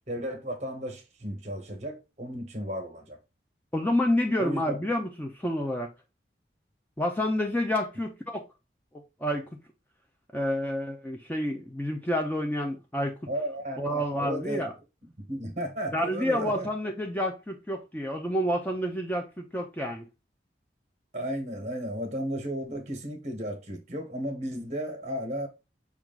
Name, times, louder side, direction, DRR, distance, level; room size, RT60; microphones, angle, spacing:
voice 1, 0.1-3.2 4.4-4.8 13.3-14.7 15.2-16.7 21.1-25.5, equal, 40° right, 1.1 m, -34 dB
voice 2, 3.7-5.9 7.0-8.4 9.2-9.5 10.3-13.2 13.8-14.7 15.9-20.1, left 1 dB, 10° left, 0.4 m, -29 dB
5.9 x 2.4 x 3.8 m
head